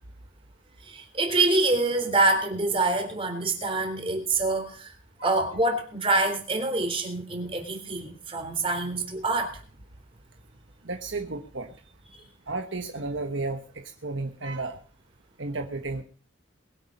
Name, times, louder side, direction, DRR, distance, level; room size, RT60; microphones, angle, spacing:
voice 1, 0.8-5.0 5.2-9.6, right 2 dB, 25° right, 5 dB, 3.6 m, -26 dB
voice 2, 10.8-11.7 12.5-14.8 15.4-16.0, right 3 dB, 65° right, 4 dB, 1.3 m, -33 dB
21.5 x 8.5 x 5.3 m, 0.41 s
head